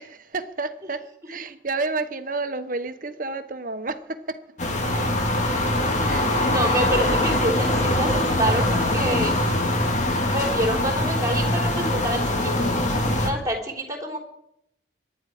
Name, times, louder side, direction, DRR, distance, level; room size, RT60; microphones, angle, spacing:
voice 1, 0.0-4.4 6.1-6.6, right 3 dB, 45° right, 1.1 m, -31 dB
sound 1, 4.6-13.3, left 1 dB, 40° left, 2.1 m, -23 dB
voice 2, 6.0-9.4 10.2-12.7 13.2-14.2, right 1 dB, 20° right, 3.6 m, -27 dB
24.0 x 11.0 x 5.1 m
head